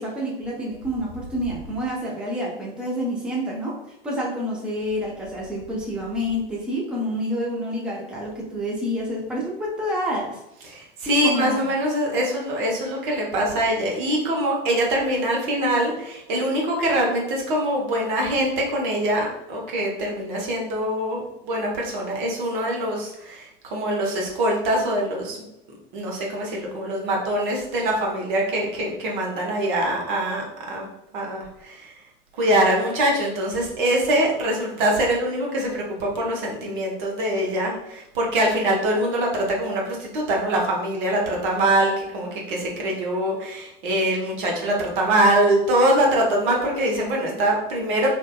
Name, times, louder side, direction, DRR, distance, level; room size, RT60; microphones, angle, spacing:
voice 1, 0.0-3.8 4.0-10.4 11.1-11.7, equal, 5° right, -4 dB, 0.6 m, -28 dB
voice 2, 10.7-25.4 25.9-30.9 31.1-31.9 32.4-48.1, right 1 dB, 55° right, -1 dB, 0.8 m, -23 dB
2.6 x 2.1 x 2.2 m, 0.86 s
figure-of-eight pair, 80°, 29 cm